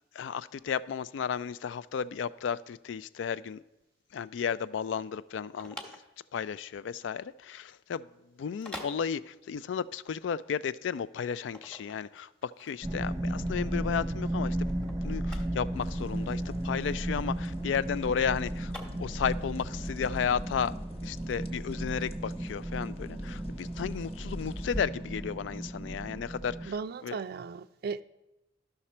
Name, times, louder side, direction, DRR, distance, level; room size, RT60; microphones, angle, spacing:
voice 1, 0.1-3.6 4.1-6.0 6.3-8.1 8.4-14.7 15.0-18.7 19.0-20.7 21.0-26.7 27.0-27.2, left 7 dB, 80° left, 0.3 m, -33 dB
sound 1, 5.3-19.5, equal, 5° left, 1.0 m, -49 dB
sound 2, 12.8-26.7, right 1 dB, 15° right, 0.7 m, -35 dB
sound 3, 15.7-24.8, equal, 35° left, 0.7 m, -46 dB
voice 2, 26.7-28.0, right 5 dB, 55° right, 0.3 m, -36 dB
12.5 x 5.8 x 4.3 m
head